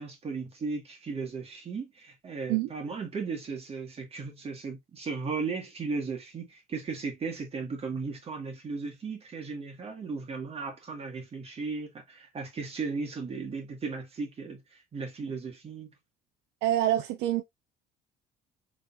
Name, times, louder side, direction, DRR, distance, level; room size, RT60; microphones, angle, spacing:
voice 1, 0.0-15.9, right 4 dB, 35° right, 1.9 m, -36 dB
voice 2, 16.6-17.4, right 13 dB, 85° right, 0.6 m, -26 dB
4.0 x 3.5 x 2.6 m
cardioid pair, 110°, 17 cm